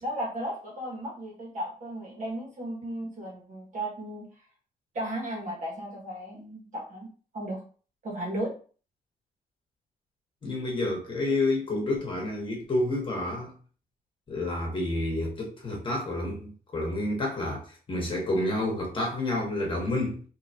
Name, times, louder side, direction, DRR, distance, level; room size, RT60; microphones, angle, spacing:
voice 1, 0.0-4.2 4.9-7.1 7.3-7.6 8.0-8.5, right 1 dB, 55° right, 1.5 m, -35 dB
voice 2, 10.4-13.5 14.3-20.2, left 2 dB, 35° left, 1.2 m, -29 dB
3.8 x 2.8 x 2.8 m
wide cardioid pair, 160°, 15 cm